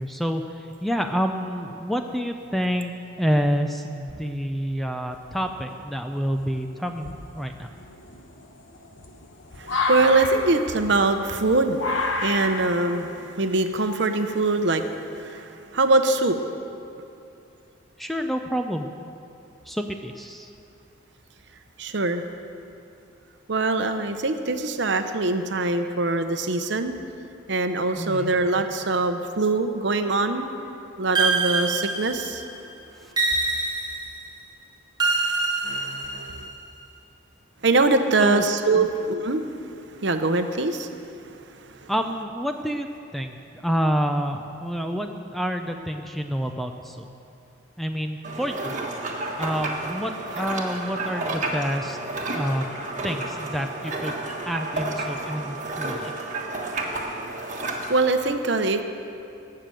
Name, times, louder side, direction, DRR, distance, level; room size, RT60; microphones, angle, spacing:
voice 1, 0.0-7.7 18.0-18.9 19.7-20.5 28.0-28.3 33.0-33.1 38.2-38.4 38.8-38.9 41.9-42.9 43.1-43.4 43.6-47.1 47.8-48.7 49.4-52.0 52.3-52.8 53.0-56.1, equal, ahead, 5 dB, 0.5 m, -28 dB
sound 1, 5.1-5.7 6.4-6.5 7.0-15.0, left 2 dB, 65° left, 1.2 m, -30 dB
voice 2, 9.6-11.8 12.2-14.9 15.2-15.5 15.7-16.4 21.8-22.2 23.5-27.0 27.5-30.5 31.0-32.4 35.6-36.4 37.6-39.4 40.0-40.9 57.7-58.8, right 3 dB, 60° right, 7 dB, 0.8 m, -23 dB
sound 2, 31.2-32.5 33.2-34.3 35.0-36.5, right 3 dB, 20° right, 1.1 m, -25 dB
sound 3, 48.2-58.1, right 2 dB, 40° right, 1.5 m, -31 dB
17.5 x 6.8 x 7.7 m, 2.6 s
head